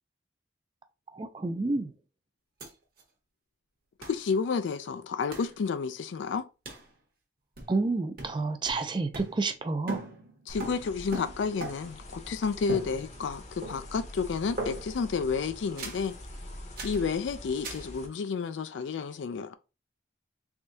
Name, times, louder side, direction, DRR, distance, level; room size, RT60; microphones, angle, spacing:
voice 1, 1.1-1.9 7.7-10.0, right 3 dB, 25° right, 0.3 m, -29 dB
sound 1, 2.6-2.7 3.0-3.1 4.0-4.2 5.3-5.6 6.6-6.9 7.6-7.9 8.2-9.6 9.9-12.0 12.7-13.3 13.6-14.1 14.6-15.1 15.8-16.1 16.8-17.1 17.6-17.9, right 2 dB, 50° right, 1.0 m, -40 dB
voice 2, 4.0-6.5 10.5-16.1 16.8-19.5, left 5 dB, 80° left, 0.4 m, -31 dB
sound 2, 10.5-18.1, left 1 dB, 35° left, 0.8 m, -45 dB
3.6 x 3.4 x 2.7 m
head